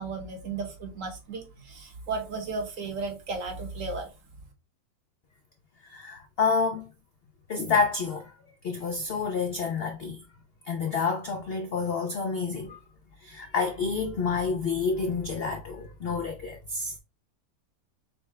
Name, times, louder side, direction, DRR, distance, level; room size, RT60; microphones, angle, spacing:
voice 1, 0.0-4.1, right 4 dB, 55° right, 1.3 m, -34 dB
voice 2, 5.8-6.9 7.5-8.3 8.6-10.2 10.7-12.8 13.2-16.9, left 5 dB, 85° left, 0.5 m, -29 dB
5.5 x 2.1 x 3.3 m
omnidirectional pair, 1.7 m